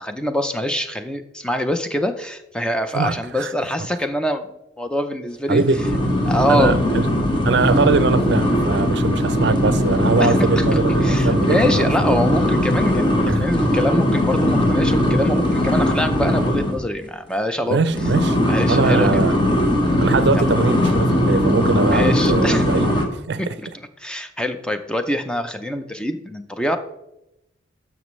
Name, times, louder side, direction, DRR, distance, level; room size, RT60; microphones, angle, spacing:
voice 1, 0.0-5.6 6.2-6.8 10.2-17.8 18.5-19.2 20.3-20.4 21.9-22.6 23.4-23.7 24.0-26.8, left 1 dB, 5° left, 0.5 m, -24 dB
voice 2, 2.9-3.5 5.5-5.8 6.5-7.1 7.4-12.2 13.3-13.5 17.7-18.4 18.7-19.4 20.0-23.5, right 4 dB, 60° right, 0.5 m, -21 dB
sound 1, 5.7-16.8 17.9-23.1, left 1 dB, 25° left, 1.2 m, -19 dB
12.0 x 6.1 x 3.2 m
head